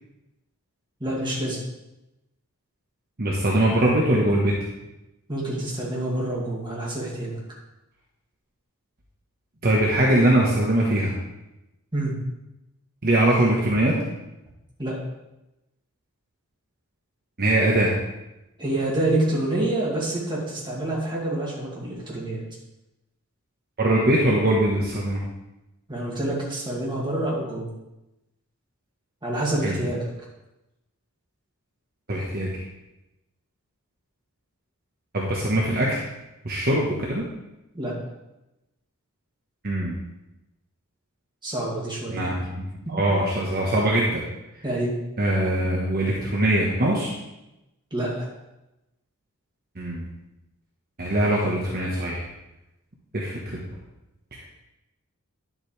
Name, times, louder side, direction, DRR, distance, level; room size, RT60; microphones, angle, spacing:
voice 1, 1.0-1.6 5.3-7.4 11.9-12.1 14.8-15.0 18.6-22.4 25.9-27.7 29.2-30.1 37.7-37.9 41.4-42.2 44.6-44.9 47.9-48.2, right 1 dB, 20° right, -5 dB, 2.3 m, -27 dB
voice 2, 3.2-4.5 9.6-11.1 13.0-13.9 17.4-17.9 23.8-25.2 29.6-29.8 32.1-32.6 35.1-36.0 36.4-37.2 39.6-40.0 42.1-44.2 45.2-47.1 49.8-50.0 51.0-52.2 53.1-53.6, right 1 dB, 45° right, -3 dB, 1.2 m, -22 dB
10.0 x 7.4 x 3.4 m, 0.95 s
head